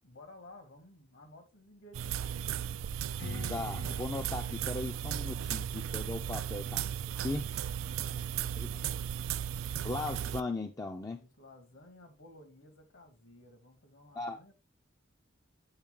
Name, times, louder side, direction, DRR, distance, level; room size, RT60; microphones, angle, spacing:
voice 1, 0.0-2.6 6.2-6.4 7.8-9.1 11.1-14.5, left 1 dB, 70° left, 1.9 m, -55 dB
sound 1, 1.9-10.4, right 9 dB, 80° right, 0.4 m, -36 dB
Strum, 3.2-8.4, left 2 dB, 50° left, 0.7 m, -48 dB
voice 2, 3.5-7.0 7.2-7.4 8.6-8.7 9.8-11.2 14.1-14.4, left 2 dB, 15° left, 0.4 m, -38 dB
8.9 x 4.0 x 3.7 m
head